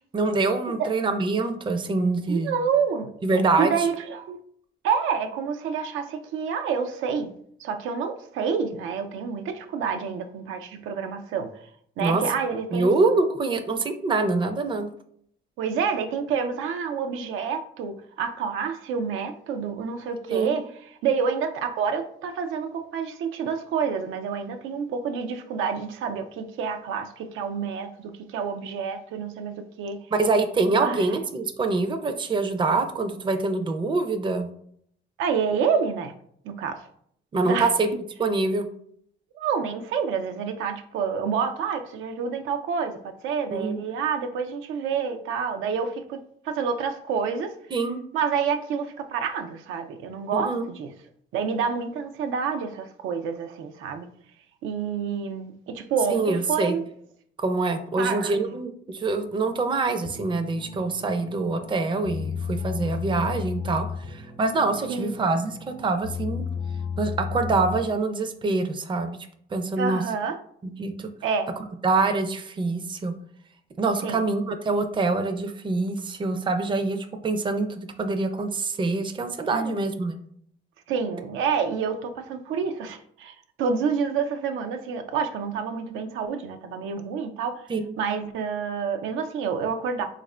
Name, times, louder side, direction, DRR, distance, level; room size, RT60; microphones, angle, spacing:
voice 1, 0.1-2.5 3.2-3.7 12.0-12.2 12.7-14.9 20.3-20.6 30.1-34.5 37.3-37.9 38.2-38.7 43.5-43.8 47.7-48.0 50.3-50.7 56.1-56.8 57.4-66.4 67.0-69.2 69.5-70.0 70.6-71.1 71.8-73.2 73.8-80.2 87.7-87.9, right 3 dB, 25° right, 7 dB, 0.4 m, -25 dB
voice 2, 2.3-3.1 3.6-4.4 4.8-7.3 7.6-11.6 12.0-12.9 15.6-20.6 21.0-30.0 30.8-31.0 35.2-36.1 36.4-36.9 37.4-37.7 39.4-47.5 48.1-50.9 51.3-54.1 54.6-56.8 58.0-58.5 64.9-65.1 69.8-70.4 71.2-71.5 74.0-74.3 79.5-79.9 80.9-87.7 88.0-90.0, right 6 dB, 85° right, 7 dB, 0.4 m, -28 dB
sound 1, 60.0-68.1, left 6 dB, 85° left, 0.7 m, -34 dB
3.5 x 2.5 x 3.2 m, 0.65 s
cardioid pair, 90°, 20 cm